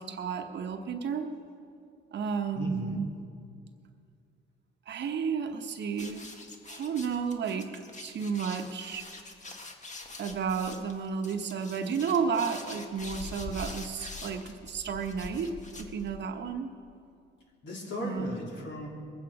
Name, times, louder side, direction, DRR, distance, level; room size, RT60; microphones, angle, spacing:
voice 1, 0.0-1.3 2.1-3.2 4.9-6.2 6.7-9.0 10.2-16.7 18.0-18.4, right 6 dB, 60° right, 5 dB, 1.1 m, -32 dB
voice 2, 2.5-3.0 17.6-18.9, left 1 dB, 65° left, -2 dB, 3.2 m, -37 dB
sound 1, 5.9-16.4, left 3 dB, 35° left, 1.6 m, -44 dB
21.5 x 8.9 x 4.8 m, 2.4 s
cardioid pair, 90°, 20 cm